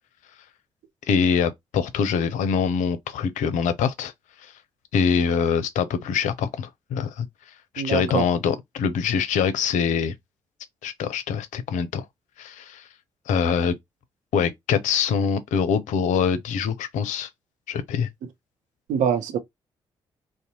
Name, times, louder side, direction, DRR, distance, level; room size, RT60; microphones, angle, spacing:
voice 1, 1.1-4.1 4.4-4.5 4.9-7.3 7.7-10.1 10.8-12.1 12.4-12.9 13.3-13.7 14.3-17.3 17.7-18.1, left 6 dB, 65° left, 0.5 m, -24 dB
voice 2, 7.8-8.2 18.9-19.4, right 7 dB, 65° right, 0.7 m, -24 dB
2.6 x 2.1 x 2.9 m
hypercardioid pair, 40°, 14 cm